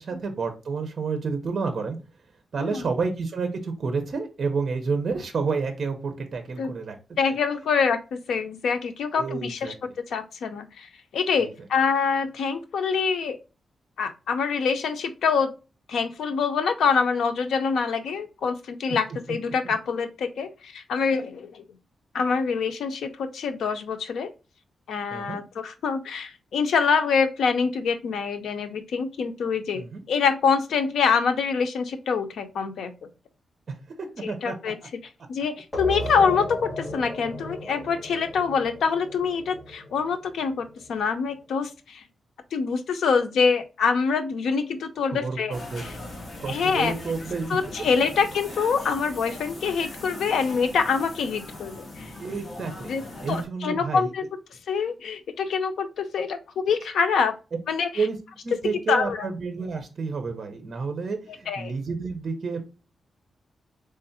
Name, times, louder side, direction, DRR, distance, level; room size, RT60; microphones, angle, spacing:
voice 1, 0.0-2.0 2.5-6.9 9.2-9.7 11.4-11.5 19.6-19.7 25.1-25.4 29.7-30.0 33.7-34.7 45.1-45.9 46.4-48.0 52.2-52.9 53.2-54.1 58.0-58.2 58.4-62.6, right 4 dB, 45° right, 6 dB, 0.7 m, -30 dB
voice 2, 7.2-9.7 10.1-13.4 14.0-15.5 15.9-21.6 22.1-24.3 24.9-32.9 34.2-34.8 35.3-42.0 42.5-45.9 46.5-46.9 47.5-52.1 52.9-53.0 53.3-54.2 54.7-57.3 57.7-58.1 58.7-59.3 61.5-61.7, left 5 dB, 90° left, 7 dB, 0.5 m, -25 dB
sound 1, 35.7-41.1, equal, 20° left, 1.7 m, -36 dB
sound 2, 45.5-53.5, left 2 dB, 40° left, 1.4 m, -40 dB
3.7 x 3.3 x 2.7 m, 0.32 s
wide cardioid pair, 145°, 0 cm